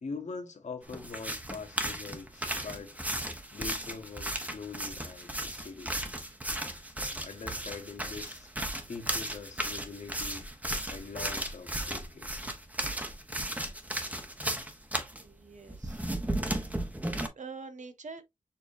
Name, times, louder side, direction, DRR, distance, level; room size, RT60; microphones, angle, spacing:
voice 1, 0.0-3.0 3.5-6.0 7.2-8.5 8.9-10.4 10.9-12.3, left 4 dB, 60° left, 1.2 m, -43 dB
sound 1, 0.9-15.2 15.7-17.3, right 1 dB, 10° right, 0.9 m, -35 dB
voice 2, 15.2-16.0 16.6-16.9 17.3-18.2, right 4 dB, 65° right, 0.8 m, -45 dB
6.9 x 3.0 x 2.6 m
wide cardioid pair, 120°, 13 cm